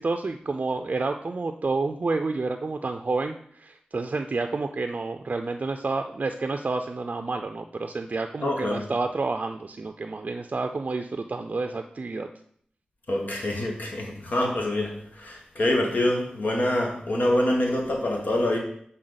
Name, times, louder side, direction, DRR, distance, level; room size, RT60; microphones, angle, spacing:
voice 1, 0.0-12.3, right 3 dB, 55° right, 6 dB, 0.4 m, -29 dB
voice 2, 8.4-8.8 13.1-18.6, left 1 dB, 70° left, 0 dB, 1.3 m, -25 dB
7.6 x 4.0 x 3.9 m, 0.63 s
cardioid pair, 50°, 3 cm